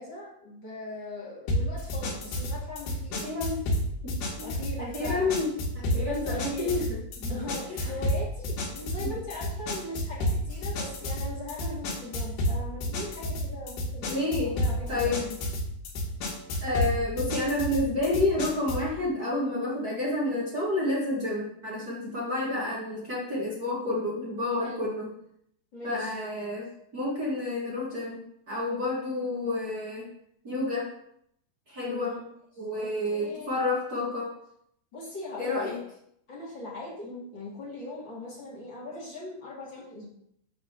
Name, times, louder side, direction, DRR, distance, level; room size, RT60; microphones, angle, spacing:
voice 1, 0.0-3.3 4.4-5.3 5.9-6.8 7.3-15.1 24.6-24.9 25.7-26.1 31.8-32.2 32.7-33.5 34.9-35.8 36.3-40.1, left 2 dB, 35° left, -5 dB, 2.5 m, -40 dB
sound 1, 1.5-18.9, equal, 85° left, 3.7 m, -31 dB
voice 2, 3.2-3.6 4.0-4.5 4.8-5.5 5.7-7.4 7.7-7.9 9.0-9.1 14.0-14.5 14.9-15.4 16.6-25.1 25.8-30.1 30.4-30.9 31.7-32.1 32.6-34.3 35.4-35.8 37.0-37.2, left 2 dB, 35° right, -5 dB, 1.5 m, -30 dB
9.9 x 4.4 x 6.5 m, 0.73 s
omnidirectional pair, 4.4 m